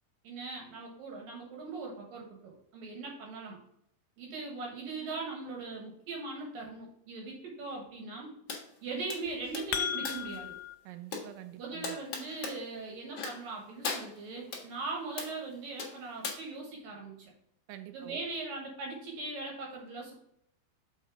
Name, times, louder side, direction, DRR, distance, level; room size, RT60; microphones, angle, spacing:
voice 1, 0.2-3.6 4.2-8.3 8.8-10.5 11.6-17.3 17.9-20.1, right 3 dB, 65° right, 0 dB, 2.7 m, -40 dB
sound 1, 8.5-8.6 9.1-10.4 11.1-11.3 11.8-12.6 13.1-13.5 13.8-14.6 15.2-15.4 15.8-16.3, left 5 dB, 60° left, 1.6 m, -38 dB
sound 2, 9.3-10.8, left 9 dB, 75° left, 2.5 m, -35 dB
voice 2, 10.9-12.0 17.7-18.2, right 14 dB, 80° right, 9 dB, 2.7 m, -46 dB
7.3 x 5.2 x 3.7 m, 0.72 s
omnidirectional pair, 5.0 m